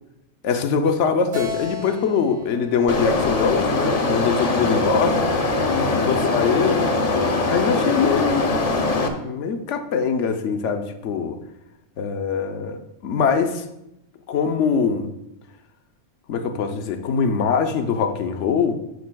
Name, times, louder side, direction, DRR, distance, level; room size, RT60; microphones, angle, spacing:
voice 1, 0.4-5.2 5.7-6.9 7.4-11.4 12.0-13.6 14.3-15.1 16.3-18.8, left 6 dB, 65° left, 7 dB, 1.0 m, -23 dB
Keyboard (musical), 1.3-4.8, left 3 dB, 60° right, 2.2 m, -36 dB
sound 1, 2.9-9.1, left 3 dB, 40° left, 0.6 m, -22 dB
11.0 x 6.8 x 2.3 m, 0.85 s
omnidirectional pair, 1.4 m